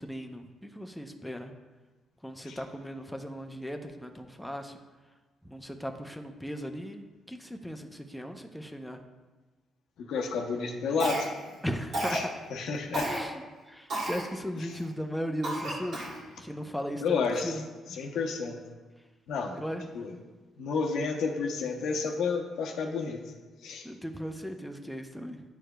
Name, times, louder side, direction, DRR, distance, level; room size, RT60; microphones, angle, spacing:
voice 1, 0.0-1.5 2.2-4.8 5.4-9.0 11.6-12.3 13.0-16.1 16.4-17.6 19.5-19.9 23.8-25.4, equal, ahead, 4 dB, 0.5 m, -37 dB
voice 2, 10.0-11.3 12.1-12.2 12.5-13.1 17.0-17.5 18.0-18.6 19.3-19.6 19.9-20.1 20.6-23.3 23.6-23.9, left 5 dB, 80° left, 2 dB, 0.7 m, -31 dB
Cough, 11.0-11.5 11.9-12.3 12.9-13.2 13.9-14.2 14.8-14.9 15.4-16.2, right 1 dB, 60° right, 1.8 m, -32 dB
10.0 x 4.8 x 2.2 m, 1.3 s
cardioid pair, 90°, 0 cm